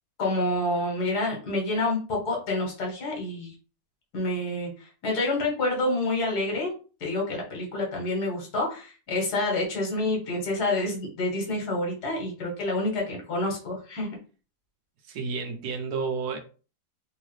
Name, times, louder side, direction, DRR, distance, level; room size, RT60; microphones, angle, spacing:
voice 1, 0.2-3.5 4.1-6.7 7.0-14.1, left 2 dB, 85° left, -1 dB, 1.8 m, -28 dB
voice 2, 15.1-16.4, right 5 dB, 80° right, 5 dB, 1.3 m, -31 dB
3.6 x 2.8 x 3.1 m, 0.36 s
omnidirectional pair, 1.6 m